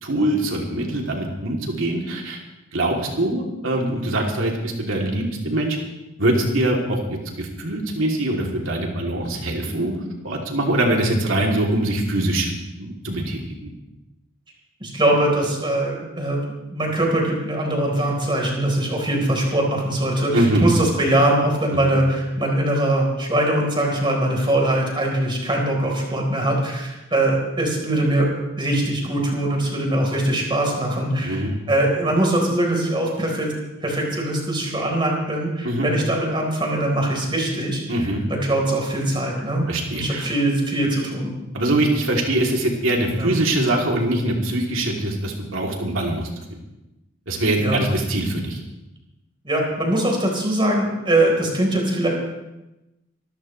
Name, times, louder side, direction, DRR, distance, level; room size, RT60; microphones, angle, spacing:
voice 1, 0.0-2.4 2.7-5.8 6.2-12.5 12.8-13.7 20.3-20.7 21.7-21.9 31.2-31.5 35.6-35.9 37.9-38.2 39.7-40.3 41.5-46.3 47.3-48.6, right 1 dB, 75° right, 0 dB, 3.0 m, -23 dB
voice 2, 14.8-16.4 16.7-33.5 33.8-39.7 39.9-41.3 43.1-43.3 47.6-47.8 49.4-52.1, right 1 dB, 25° right, 0 dB, 4.2 m, -22 dB
24.5 x 13.5 x 3.3 m, 0.96 s
head